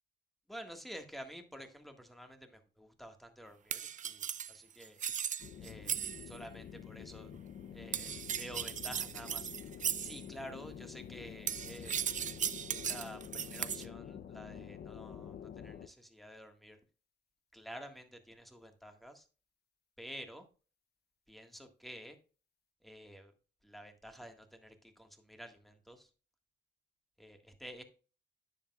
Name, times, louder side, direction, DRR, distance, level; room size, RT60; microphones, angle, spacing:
voice 1, 0.5-5.0 5.6-5.9 6.2-7.3 7.7-9.5 10.0-12.0 12.7-16.8 17.5-19.3 20.0-20.4 21.3-22.2 22.8-23.3 23.6-26.1 27.2-27.8, equal, ahead, 5 dB, 1.6 m, -50 dB
sound 1, 3.7-6.4 7.9-10.2 11.5-13.9, right 8 dB, 40° right, 0.5 m, -37 dB
sound 2, 5.4-15.9, left 8 dB, 55° left, 0.6 m, -48 dB
10.0 x 7.6 x 2.4 m, 0.36 s
cardioid pair, 90°, 20 cm